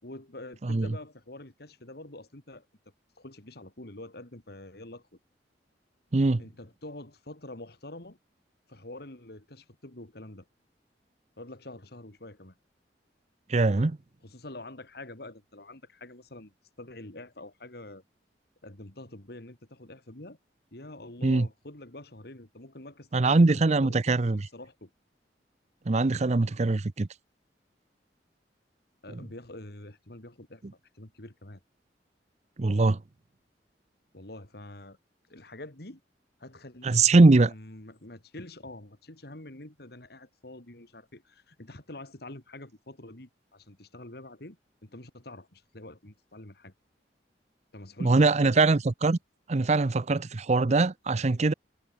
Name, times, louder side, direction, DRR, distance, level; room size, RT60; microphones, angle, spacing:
voice 1, 0.0-2.7 3.2-5.0 6.4-8.2 8.7-10.5 11.4-12.5 14.2-18.0 18.6-20.4 20.7-24.9 29.0-30.6 30.9-31.6 34.1-35.0 35.3-36.0 36.4-37.0 37.5-46.7 47.7-48.6, left 1 dB, 60° left, 2.8 m, -46 dB
voice 2, 13.5-14.0 21.2-21.5 23.1-24.4 25.9-27.1 32.6-33.0 36.8-37.5 48.0-49.2 49.5-51.5, right 3 dB, 40° right, 0.6 m, -22 dB
head